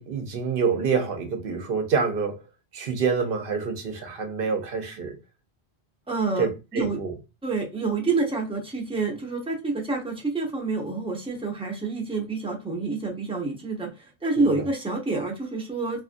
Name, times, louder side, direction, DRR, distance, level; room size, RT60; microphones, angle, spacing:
voice 1, 0.0-2.4 2.7-5.2 6.4-7.1 14.4-14.7, right 5 dB, 60° right, 0.8 m, -27 dB
voice 2, 6.1-7.0 7.4-16.0, right 3 dB, 5° right, 0.6 m, -28 dB
2.6 x 2.4 x 2.5 m
omnidirectional pair, 1.1 m